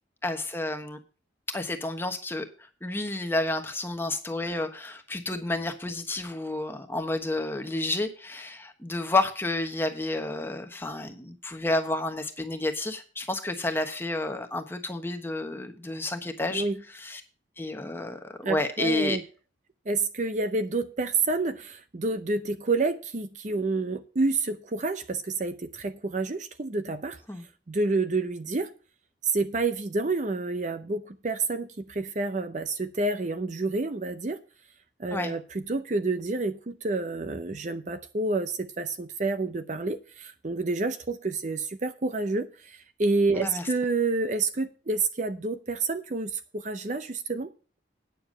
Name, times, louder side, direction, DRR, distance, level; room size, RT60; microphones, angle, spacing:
voice 1, 0.2-1.0 1.5-2.5 2.8-16.6 16.9-17.2 17.6-19.2 27.3-27.4 35.1-35.3 43.3-43.7, left 2 dB, 10° left, 1.2 m, -30 dB
voice 2, 18.4-19.2 19.9-27.2 27.7-28.7 29.2-34.4 35.0-47.5, right 3 dB, 40° right, 0.6 m, -29 dB
9.3 x 6.9 x 6.4 m
head